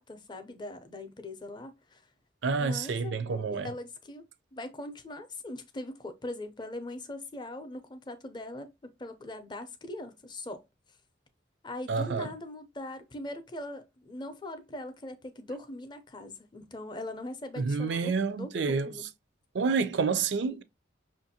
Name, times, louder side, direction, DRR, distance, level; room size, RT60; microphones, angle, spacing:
voice 1, 0.0-2.0 2.6-4.3 4.5-10.6 11.6-19.1 20.4-20.6, left 1 dB, 25° left, 0.5 m, -41 dB
voice 2, 2.4-3.7 11.9-12.3 17.6-18.9 19.5-20.6, right 4 dB, 70° right, 0.4 m, -28 dB
5.6 x 2.5 x 2.7 m
head